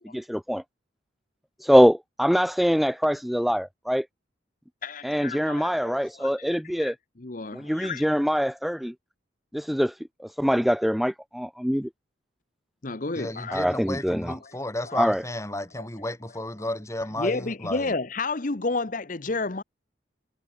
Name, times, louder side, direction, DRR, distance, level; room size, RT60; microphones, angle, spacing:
voice 1, 0.1-0.6 1.6-4.1 5.0-7.0 7.5-8.9 9.5-11.9 13.5-14.4 14.9-15.3, equal, ahead, 0.4 m, -23 dB
voice 2, 4.8-5.7 6.2-8.0 12.8-13.6 14.4-14.5 14.8-15.1 15.8-15.9 16.6-16.7 17.2-19.6, left 3 dB, 45° left, 1.0 m, -31 dB
voice 3, 13.1-17.9, left 1 dB, 15° left, 2.7 m, -33 dB
head